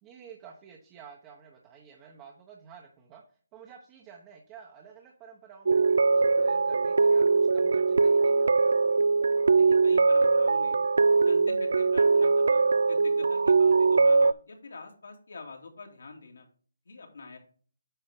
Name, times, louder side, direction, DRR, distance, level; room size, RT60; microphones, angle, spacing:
voice 1, 0.0-8.7, right 7 dB, 15° right, 0 dB, 0.9 m, -51 dB
sound 1, 5.7-14.3, right 4 dB, 70° right, 0.3 m, -22 dB
voice 2, 9.6-10.8 11.2-16.5 16.9-17.4, left 3 dB, 70° left, 2 dB, 2.4 m, -45 dB
8.9 x 5.3 x 3.6 m, 0.43 s
hypercardioid pair, 165°, 0 cm